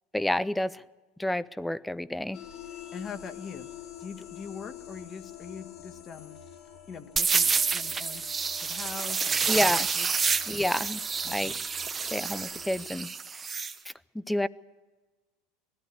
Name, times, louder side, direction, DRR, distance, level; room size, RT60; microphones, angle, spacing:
voice 1, 0.1-0.8 1.2-2.4 9.5-9.9 10.5-11.0 11.3-11.5 12.1-13.1 14.1-14.5, left 1 dB, 5° left, 0.6 m, -29 dB
sound 1, 2.3-13.0, left 8 dB, 50° left, 2.3 m, -47 dB
voice 2, 2.7-3.7 4.0-6.4 6.9-8.3 8.6-10.4 11.2-11.6, left 6 dB, 35° left, 1.6 m, -43 dB
sound 2, 7.2-13.7, right 5 dB, 20° right, 1.0 m, -29 dB
20.0 x 14.5 x 9.8 m
supercardioid pair, 115°, 0 cm